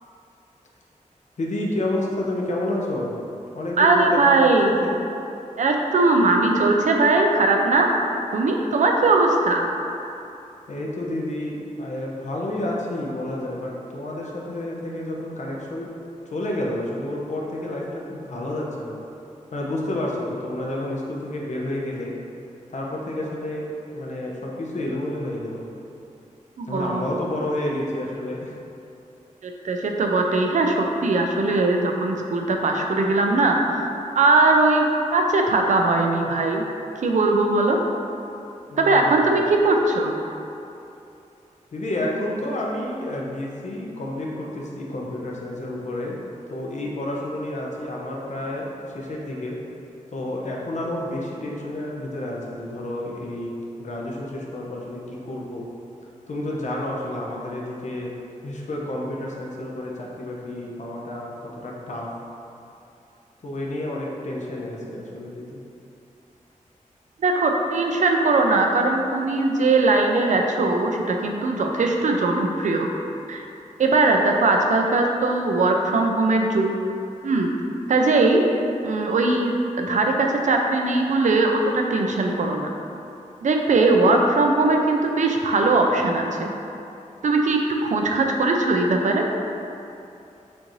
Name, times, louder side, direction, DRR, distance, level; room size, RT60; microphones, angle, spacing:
voice 1, 1.4-3.1 3.5-4.6 4.8-5.0 10.7-15.9 16.3-19.0 19.5-22.1 22.7-23.7 23.9-25.6 26.7-28.6 38.7-39.4 41.7-46.2 46.5-49.6 50.1-55.6 56.3-58.1 58.4-62.1 63.4-65.6, left 1 dB, 60° left, -3 dB, 0.8 m, -30 dB
voice 2, 3.8-4.7 5.6-7.9 8.3-9.7 26.6-27.1 29.4-33.6 34.2-34.9 35.1-36.6 37.0-37.8 38.8-40.1 67.2-72.9 73.3-73.4 73.8-76.7 77.2-77.5 77.9-78.4 78.8-82.7 83.4-86.5 87.2-89.3, right 3 dB, 65° right, 2 dB, 0.5 m, -20 dB
6.3 x 2.6 x 3.1 m, 2.8 s
wide cardioid pair, 85°, 13 cm